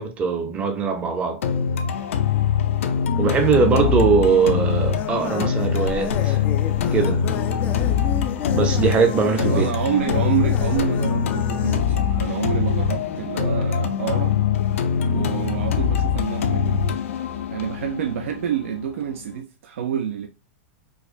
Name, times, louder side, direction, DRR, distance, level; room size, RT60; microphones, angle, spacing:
voice 1, 0.0-1.6 3.2-6.4 6.9-7.2 8.5-9.7, right 5 dB, 20° right, 0.7 m, -21 dB
sound 1, 1.4-19.4, left 7 dB, 80° left, 0.6 m, -23 dB
sound 2, 5.0-11.8, left 7 dB, 25° left, 0.4 m, -32 dB
voice 2, 9.3-14.4 15.0-16.8 17.5-20.3, right 8 dB, 80° right, 0.6 m, -27 dB
4.7 x 2.1 x 2.5 m
supercardioid pair, 160°, 7 cm